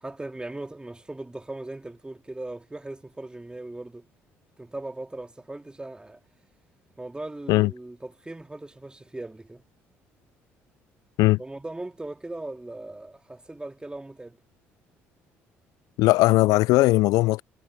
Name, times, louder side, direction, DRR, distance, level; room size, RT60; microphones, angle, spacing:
voice 1, 0.0-4.1 4.6-6.2 7.0-9.6 11.4-14.4, right 2 dB, 15° right, 2.3 m, -38 dB
voice 2, 16.0-17.4, left 19 dB, 70° left, 0.4 m, -19 dB
hypercardioid pair, 55°, 6 cm